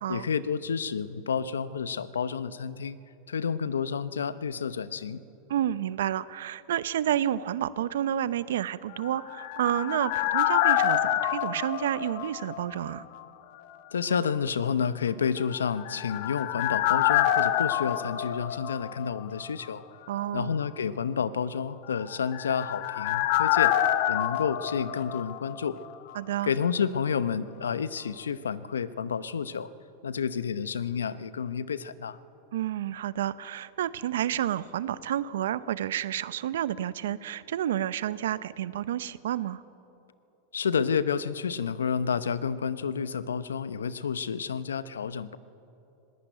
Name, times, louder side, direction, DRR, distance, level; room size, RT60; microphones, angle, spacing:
voice 1, 0.1-3.0 3.3-5.2 13.9-19.8 20.3-23.7 24.1-25.8 26.4-29.7 30.0-32.2 40.5-45.4, left 6 dB, 90° left, 16 dB, 0.8 m, -30 dB
voice 2, 5.5-13.0 20.1-20.5 26.1-26.5 32.5-39.6, right 11 dB, 75° right, 17 dB, 0.7 m, -30 dB
sound 1, 9.1-12.9 13.2-13.3 15.7-19.4 19.6-19.7 22.0-25.9 26.1-26.2, left 12 dB, 60° left, 1.2 m, -27 dB
20.0 x 17.5 x 9.2 m, 2.9 s
hypercardioid pair, 105°, 0 cm